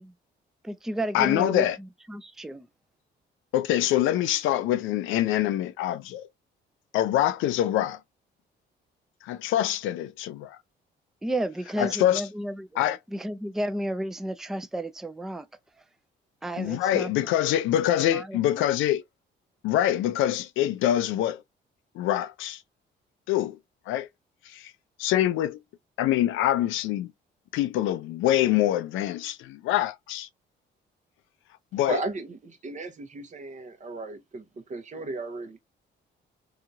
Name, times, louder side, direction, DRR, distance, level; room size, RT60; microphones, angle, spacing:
voice 1, 0.6-2.7 11.2-15.5 16.4-17.4 17.7-18.4, right 1 dB, ahead, 0.4 m, -32 dB
voice 2, 1.1-1.8 3.5-6.3 6.9-8.0 9.2-10.6 11.6-12.2 12.8-13.0 16.6-19.0 19.6-21.4 22.0-22.6 23.3-23.6 23.9-24.1 24.5-24.7 25.0-25.6 26.0-27.1 27.5-30.3 31.7-32.1, left 12 dB, 90° left, 0.4 m, -25 dB
voice 3, 31.9-35.6, right 3 dB, 40° right, 0.8 m, -35 dB
2.9 x 2.4 x 2.6 m
cardioid pair, 90°, 20 cm